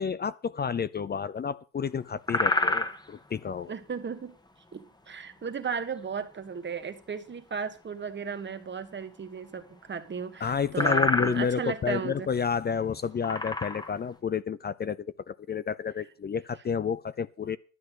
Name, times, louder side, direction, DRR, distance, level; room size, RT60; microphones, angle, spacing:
voice 1, 0.0-3.7 10.4-17.6, left 7 dB, 35° left, 0.6 m, -30 dB
sound 1, 2.1-3.1 6.2-6.3 9.7-9.8 10.2-10.3 10.7-11.5 12.2-12.3 13.0-14.0, left 2 dB, 15° left, 1.6 m, -27 dB
voice 2, 3.7-4.3 4.7-12.3, right 6 dB, 35° right, 1.6 m, -35 dB
12.5 x 8.3 x 6.3 m
cardioid pair, 90°, 30 cm